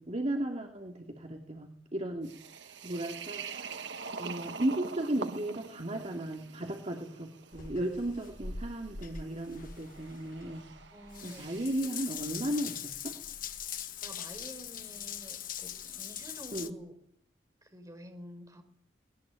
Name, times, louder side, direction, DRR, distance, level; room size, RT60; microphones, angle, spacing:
voice 1, 0.0-2.3 2.8-3.9 4.2-10.6 11.2-13.1 16.5-16.7, right 1 dB, 35° right, 1 dB, 2.7 m, -35 dB
sound 1, 2.2-12.0, right 5 dB, 75° right, 1.4 m, -45 dB
Water tap faucet / Bathtub (filling or washing) / Drip, 7.5-16.7, left 8 dB, 50° left, 1.4 m, -42 dB
voice 2, 10.9-11.5 14.0-17.0 17.6-18.6, equal, 20° right, 5 dB, 4.5 m, -49 dB
20.0 x 19.0 x 9.1 m, 0.66 s
head